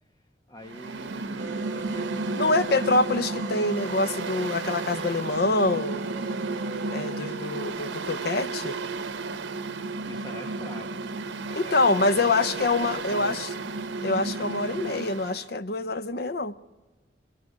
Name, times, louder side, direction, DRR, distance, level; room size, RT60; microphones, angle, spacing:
voice 1, 0.5-2.9 10.0-11.0 11.4-13.4, equal, 20° left, 1.6 m, -45 dB
Mechanical fan, 0.6-15.4, right 3 dB, 90° right, 1.0 m, -33 dB
sound 1, 1.4-7.8, right 5 dB, 40° right, 1.5 m, -40 dB
voice 2, 2.4-6.0 6.9-8.8 11.5-13.5 14.0-16.5, left 2 dB, 55° left, 0.8 m, -25 dB
25.0 x 22.5 x 8.3 m
head